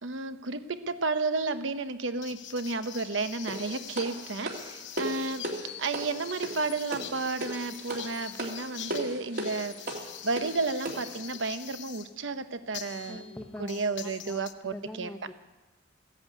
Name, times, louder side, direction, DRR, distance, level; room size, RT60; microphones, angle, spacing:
voice 1, 0.0-5.5 5.8-9.8 10.2-13.2 13.6-15.1, right 3 dB, 85° right, 10 dB, 1.0 m, -32 dB
sound 1, 2.2-12.1 12.7-14.5, left 11 dB, 70° left, 0.8 m, -44 dB
sound 2, 3.5-11.2, right 1 dB, 55° right, 2.7 m, -38 dB
voice 2, 13.1-14.4 14.7-15.3, left 1 dB, 10° left, 1 dB, 0.8 m, -43 dB
16.0 x 10.5 x 8.2 m, 1.1 s
head